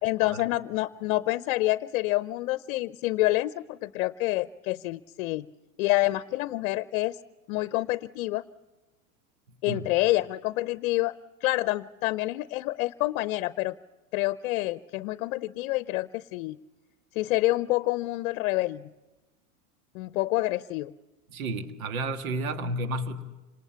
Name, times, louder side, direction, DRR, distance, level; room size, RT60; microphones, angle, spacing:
voice 1, 0.0-5.4 5.8-7.2 7.5-8.4 9.6-11.1 11.4-13.7 14.1-16.6 17.1-18.8 19.9-20.9, left 18 dB, 65° left, 15 dB, 0.7 m, -27 dB
voice 2, 21.3-23.2, right 1 dB, 80° right, 8 dB, 1.8 m, -31 dB
27.0 x 19.5 x 6.9 m, 1.1 s
hypercardioid pair, 105°, 41 cm